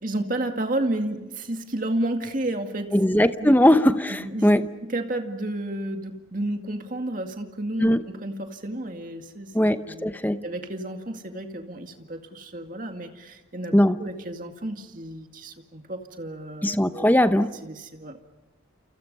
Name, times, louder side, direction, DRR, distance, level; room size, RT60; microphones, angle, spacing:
voice 1, 0.0-3.6 4.1-4.6 4.9-10.1 10.4-17.1 17.6-18.2, right 1 dB, 40° right, 5 dB, 2.2 m, -32 dB
voice 2, 2.9-4.7 7.8-8.0 9.5-10.4 13.7-14.0 16.6-17.6, left 1 dB, 10° left, 10 dB, 0.8 m, -20 dB
29.0 x 29.0 x 5.5 m, 1.0 s
head